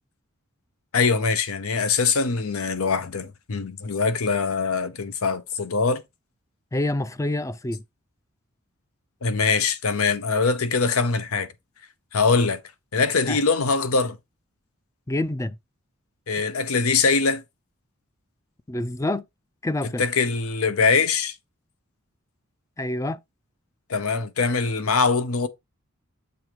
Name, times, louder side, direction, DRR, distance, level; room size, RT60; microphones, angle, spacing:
voice 1, 0.9-6.0 9.2-11.5 12.1-12.6 12.9-14.2 16.3-17.4 20.0-21.3 23.9-25.5, left 4 dB, 80° left, 0.8 m, -22 dB
voice 2, 6.7-7.8 13.3-13.4 15.1-15.6 18.7-19.2 19.6-20.0 22.8-23.2, left 1 dB, 15° left, 0.4 m, -27 dB
6.9 x 3.5 x 4.7 m
head